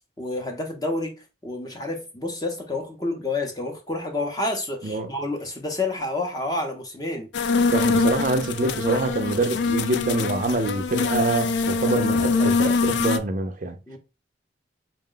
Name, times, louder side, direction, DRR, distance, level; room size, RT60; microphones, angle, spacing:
voice 1, 0.2-1.1 1.4-7.3 13.9-14.0, left 2 dB, 20° left, 0.6 m, -29 dB
sound 1, 7.3-13.2, left 4 dB, 70° left, 0.4 m, -24 dB
voice 2, 7.7-13.8, right 2 dB, 45° right, 0.4 m, -25 dB
4.0 x 2.2 x 3.7 m
head